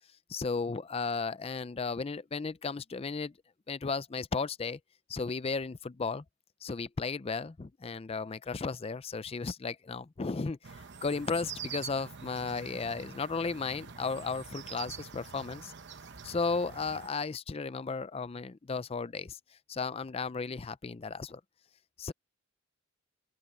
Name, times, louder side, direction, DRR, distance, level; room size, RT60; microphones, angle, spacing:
voice 1, 0.3-3.3 3.7-4.8 5.1-6.2 6.6-10.7 11.0-15.7 16.2-19.4 19.7-21.4 22.0-22.1, left 4 dB, 25° left, 0.4 m, -34 dB
sound 1, 10.6-17.1, right 7 dB, 50° right, 0.9 m, -45 dB
open air
head